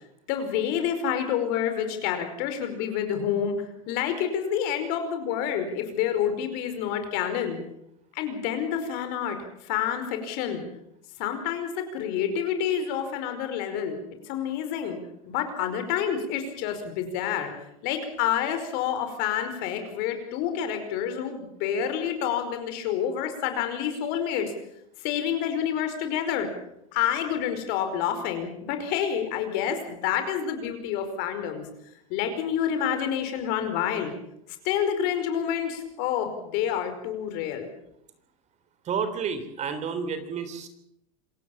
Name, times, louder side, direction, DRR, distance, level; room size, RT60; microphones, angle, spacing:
voice 1, 0.3-3.5 3.9-7.6 8.1-9.4 9.6-10.6 11.2-14.0 14.3-15.0 15.2-17.5 17.8-24.5 25.0-26.5 26.9-31.6 32.1-34.1 34.6-37.7, left 9 dB, 60° left, 7 dB, 5.1 m, -28 dB
voice 2, 38.9-40.7, right 6 dB, 40° right, 11 dB, 3.6 m, -30 dB
27.0 x 16.0 x 7.3 m, 0.78 s
hypercardioid pair, 105°, 18 cm